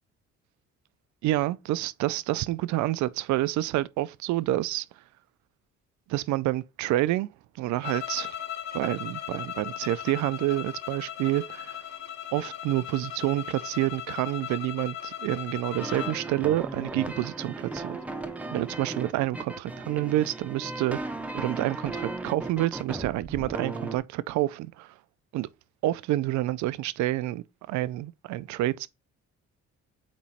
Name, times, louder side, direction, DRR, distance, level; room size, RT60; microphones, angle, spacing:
voice 1, 1.2-4.9 6.1-7.3 7.6-8.4 8.7-11.8 12.3-18.0 18.5-21.0 21.3-24.9 25.3-25.5 25.8-28.9, right 16 dB, 75° right, 0.5 m, -28 dB
sound 1, 7.8-16.2, left 10 dB, 65° left, 0.9 m, -37 dB
sound 2, 15.7-24.0, right 2 dB, 5° right, 0.6 m, -36 dB
8.6 x 3.1 x 4.2 m
cardioid pair, 160°, 29 cm